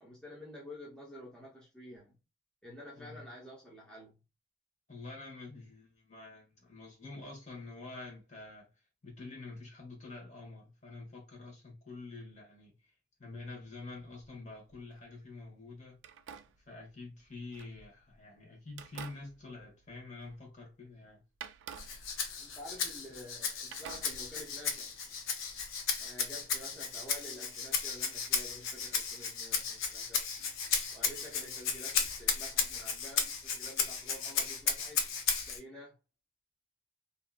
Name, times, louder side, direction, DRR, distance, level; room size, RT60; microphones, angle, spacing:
voice 1, 0.0-2.2 2.6-4.1 22.4-25.0 26.0-30.2 30.9-35.0 35.3-36.0, left 1 dB, 5° left, 0.6 m, -50 dB
voice 2, 3.0-3.3 4.9-8.7 9.0-12.9 13.2-16.0 16.7-21.2, left 3 dB, 35° left, 1.0 m, -47 dB
sound 1, 13.9-15.1 16.0-18.2 18.7-20.6 20.9-21.0 21.4-23.4 23.7-24.7, right 8 dB, 65° right, 0.3 m, -51 dB
Rattle (instrument), 21.8-35.6, left 6 dB, 85° left, 0.5 m, -34 dB
2.8 x 2.4 x 2.2 m
head